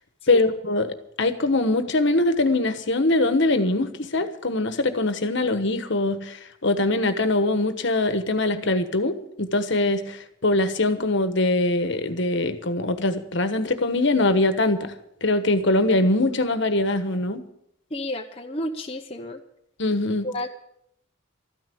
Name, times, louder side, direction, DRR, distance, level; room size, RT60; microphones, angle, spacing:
voice 1, 0.3-14.9 15.2-17.4 19.8-20.3, left 2 dB, 60° left, 10 dB, 1.3 m, -22 dB
voice 2, 17.9-19.4 20.2-20.5, left 1 dB, 30° left, 2 dB, 0.8 m, -31 dB
13.5 x 10.0 x 8.5 m, 0.76 s
head